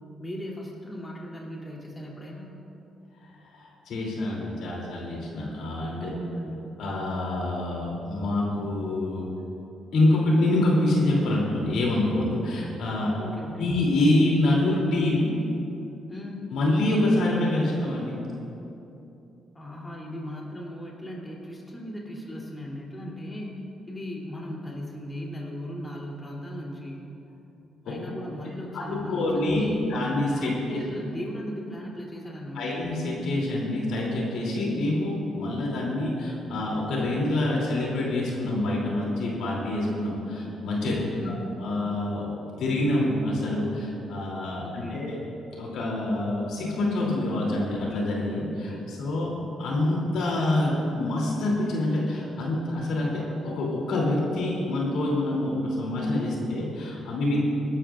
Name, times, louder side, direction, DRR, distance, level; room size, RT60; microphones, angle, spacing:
voice 1, 0.2-2.5 5.9-6.6 13.2-13.8 16.1-16.5 19.5-23.6 23.9-27.0 27.9-32.8 40.8-41.6 44.6-45.1, equal, 20° left, -3 dB, 3.1 m, -37 dB
voice 2, 3.5-6.1 6.8-9.3 9.9-13.1 13.6-15.3 16.5-18.2 27.8-27.9 28.7-30.8 32.5-41.0 41.6-42.3 42.6-45.2 45.5-49.3 49.6-57.4, left 1 dB, 80° left, -3 dB, 3.0 m, -26 dB
21.0 x 12.5 x 2.5 m, 2.9 s
cardioid pair, 90°, 0 cm